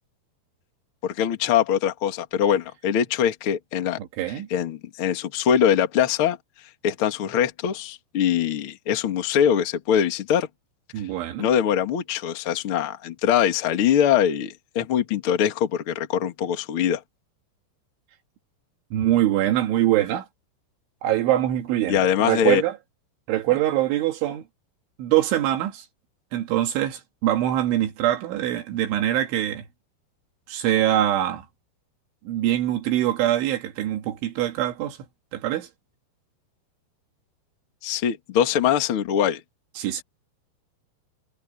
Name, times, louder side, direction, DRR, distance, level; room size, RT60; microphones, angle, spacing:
voice 1, 1.0-4.0 4.5-6.4 6.8-10.5 11.4-17.0 21.9-22.6 37.8-39.4, left 9 dB, 60° left, 1.4 m, -22 dB
voice 2, 4.0-4.5 10.9-11.5 18.9-20.3 21.0-22.8 23.3-24.4 25.0-25.9 26.3-29.6 30.5-31.5 32.3-35.0 35.3-35.7 39.8-40.0, right 13 dB, 80° right, 4.1 m, -23 dB
omnidirectional pair, 5.5 m